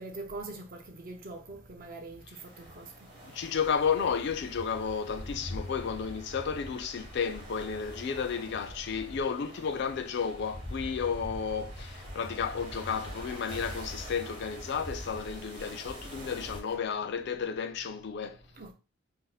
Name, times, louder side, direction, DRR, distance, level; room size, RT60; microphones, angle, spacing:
voice 1, 0.0-2.9 18.6-18.7, right 2 dB, 45° right, 0.6 m, -43 dB
sound 1, 2.4-16.8, equal, 30° right, 0.9 m, -44 dB
voice 2, 3.3-18.4, left 6 dB, 60° left, 0.4 m, -32 dB
2.6 x 2.1 x 4.0 m
head